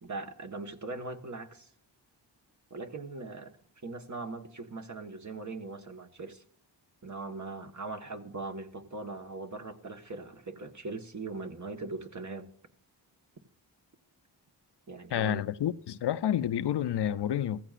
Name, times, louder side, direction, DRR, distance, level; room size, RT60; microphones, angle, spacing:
voice 1, 0.0-1.7 2.7-3.5 3.8-6.4 7.0-12.5 14.9-15.5, right 3 dB, 40° right, 1.4 m, -40 dB
voice 2, 15.1-17.6, left 10 dB, 65° left, 0.6 m, -29 dB
15.5 x 14.5 x 2.5 m
cardioid pair, 55°, 44 cm